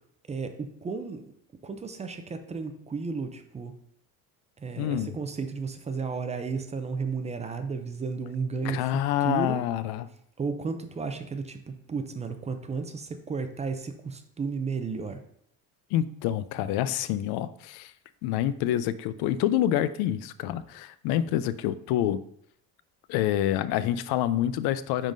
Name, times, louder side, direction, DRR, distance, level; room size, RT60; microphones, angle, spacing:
voice 1, 0.3-1.2 1.6-3.7 4.6-9.6 10.4-15.2, right 5 dB, 20° right, 7 dB, 0.4 m, -33 dB
voice 2, 4.8-5.2 8.6-10.1 15.9-17.9 18.2-22.2 23.1-25.1, left 12 dB, 85° left, 14 dB, 0.5 m, -27 dB
10.0 x 3.7 x 2.6 m, 0.70 s
cardioid pair, 135°, 36 cm